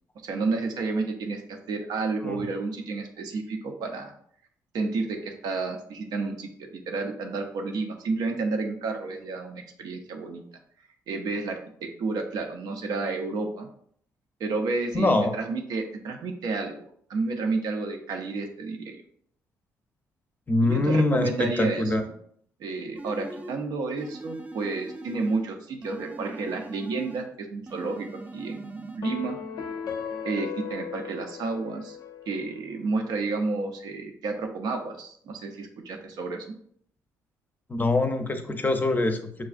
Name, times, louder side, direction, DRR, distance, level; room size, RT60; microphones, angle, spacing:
voice 1, 0.2-4.1 4.7-10.4 11.1-13.7 14.4-16.8 17.1-19.0 20.6-22.1 22.6-29.4 30.2-32.0 32.3-36.5, right 3 dB, 75° right, 4 dB, 0.6 m, -31 dB
voice 2, 14.9-15.3 20.5-22.0 37.7-39.5, left 2 dB, 25° left, 6 dB, 0.6 m, -24 dB
sound 1, 23.0-23.6 24.0-25.5 25.8-27.3 27.7-29.0, right 2 dB, 20° right, 0.5 m, -41 dB
sound 2, 29.0-32.5, left 7 dB, 70° left, 0.5 m, -36 dB
6.1 x 2.3 x 2.4 m, 0.63 s
supercardioid pair, 65°, 7 cm